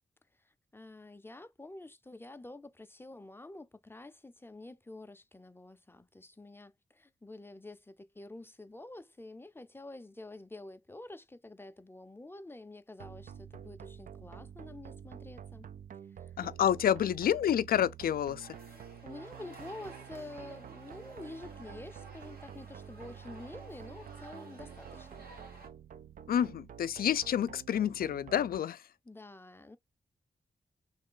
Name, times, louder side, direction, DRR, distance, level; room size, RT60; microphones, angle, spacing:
voice 1, 0.7-15.7 16.2-16.3 16.8-17.1 18.7-25.3 29.1-29.8, left 2 dB, 15° left, 0.5 m, -48 dB
sound 1, 13.0-28.6, right 8 dB, 65° right, 0.4 m, -49 dB
voice 2, 16.4-18.6 26.3-28.8, left 10 dB, 85° left, 0.4 m, -29 dB
sound 2, 18.4-25.7, right 3 dB, 85° right, 1.4 m, -53 dB
3.3 x 3.2 x 3.7 m
wide cardioid pair, 110°, 15 cm